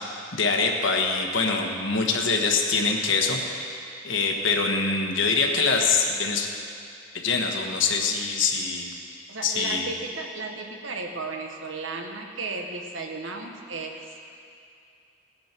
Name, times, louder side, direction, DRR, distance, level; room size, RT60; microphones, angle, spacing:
voice 1, 0.3-3.8 4.0-6.5 7.1-8.9 9.4-9.8, left 4 dB, 75° left, 2 dB, 1.4 m, -24 dB
voice 2, 9.3-14.0, right 3 dB, 85° right, 3 dB, 1.3 m, -34 dB
17.5 x 10.5 x 4.5 m, 2.5 s
head